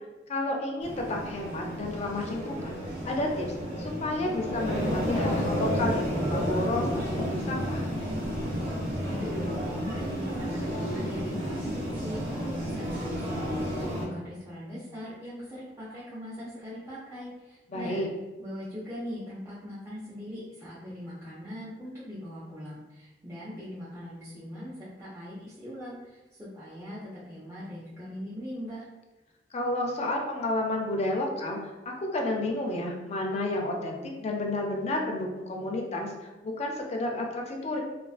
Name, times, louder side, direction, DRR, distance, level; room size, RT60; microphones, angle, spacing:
voice 1, 0.3-2.8 3.0-3.5 3.8-7.8 17.7-18.1 29.5-31.6 32.0-36.1 36.4-37.8, left 2 dB, 40° left, 0 dB, 0.4 m, -31 dB
sound 1, 0.8-14.0, equal, 55° right, 0.8 m, -31 dB
voice 2, 9.0-18.0 18.4-28.9, equal, 15° right, -11 dB, 0.5 m, -41 dB
2.3 x 2.3 x 2.4 m, 1.1 s
head